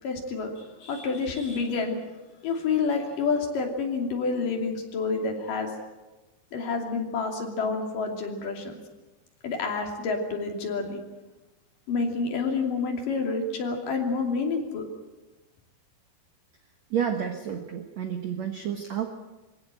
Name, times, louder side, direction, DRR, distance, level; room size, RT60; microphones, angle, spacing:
voice 1, 0.0-2.0 2.4-5.7 6.5-8.8 9.4-11.0 11.9-14.9, left 4 dB, 55° left, 2 dB, 4.2 m, -28 dB
voice 2, 16.9-19.1, right 8 dB, 60° right, 5 dB, 1.9 m, -30 dB
24.0 x 16.5 x 9.1 m, 1.1 s
omnidirectional pair, 4.9 m